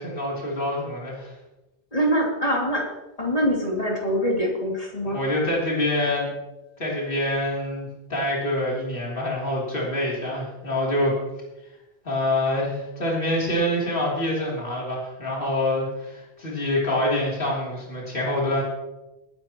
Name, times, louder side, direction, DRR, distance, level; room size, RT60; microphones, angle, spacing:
voice 1, 0.0-1.3 5.0-6.3 6.8-11.1 12.0-18.6, left 1 dB, 50° left, -4 dB, 3.5 m, -26 dB
voice 2, 1.9-2.9 3.2-5.2, equal, 30° left, -2 dB, 3.0 m, -24 dB
20.0 x 10.5 x 3.0 m, 0.99 s
omnidirectional pair, 1.2 m